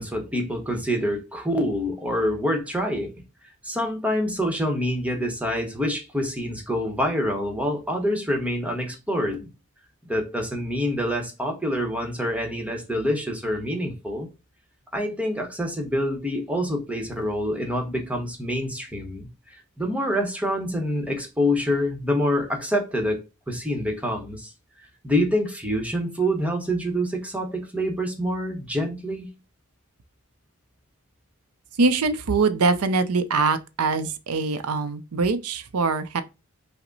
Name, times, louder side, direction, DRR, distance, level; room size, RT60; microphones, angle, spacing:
voice 1, 0.0-3.1 3.6-9.5 10.0-14.3 14.9-23.2 23.5-24.5 25.0-29.3, equal, 5° right, 1.0 m, -26 dB
voice 2, 31.8-36.2, right 4 dB, 80° right, 0.6 m, -23 dB
5.8 x 2.1 x 3.9 m
head